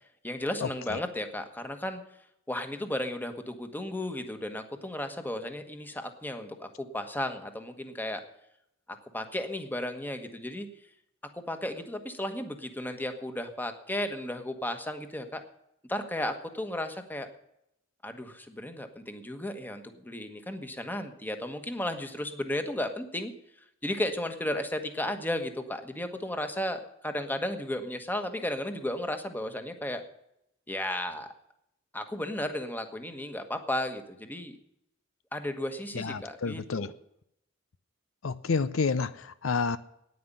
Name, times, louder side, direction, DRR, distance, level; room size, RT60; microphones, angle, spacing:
voice 1, 0.2-2.0 2.5-8.2 9.1-10.7 11.3-15.4 15.9-17.3 18.0-23.3 23.8-30.0 30.7-31.3 31.9-34.6 35.3-36.9, left 1 dB, 10° left, 1.3 m, -34 dB
voice 2, 36.0-36.9 38.2-39.1 39.4-39.8, left 4 dB, 75° left, 0.6 m, -29 dB
9.7 x 9.4 x 9.9 m
head